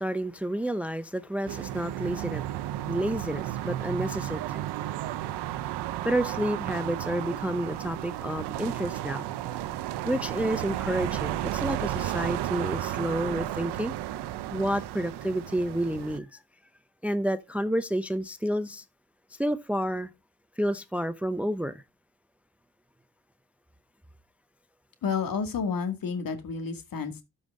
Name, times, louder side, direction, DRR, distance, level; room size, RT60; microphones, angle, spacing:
voice 1, 0.0-2.5 2.9-4.9 6.0-9.3 10.0-13.9 14.5-16.4 17.0-18.8 19.3-20.1 20.6-21.8, right 1 dB, 5° right, 0.6 m, -30 dB
sound 1, 1.5-16.2, right 13 dB, 85° right, 0.8 m, -33 dB
voice 2, 25.0-27.2, left 5 dB, 60° left, 2.2 m, -30 dB
12.5 x 5.5 x 3.7 m
cardioid pair, 75°, 39 cm